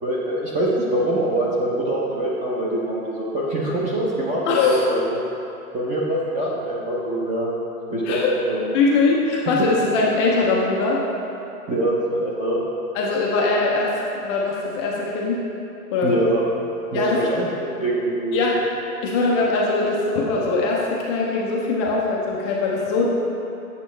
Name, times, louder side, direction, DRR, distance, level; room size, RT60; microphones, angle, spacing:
voice 1, 0.0-5.3 5.7-7.5 7.9-8.7 11.7-12.6 16.0-16.4 16.9-18.4, right 1 dB, 15° right, -5 dB, 0.7 m, -24 dB
voice 2, 4.5-4.8 8.0-8.3 8.7-11.0 12.9-15.4 15.9-16.2 16.9-17.3 18.3-18.6 19.0-23.1, left 3 dB, 20° left, -3 dB, 0.4 m, -21 dB
8.4 x 6.7 x 3.2 m, 2.8 s
hypercardioid pair, 135°, 45 cm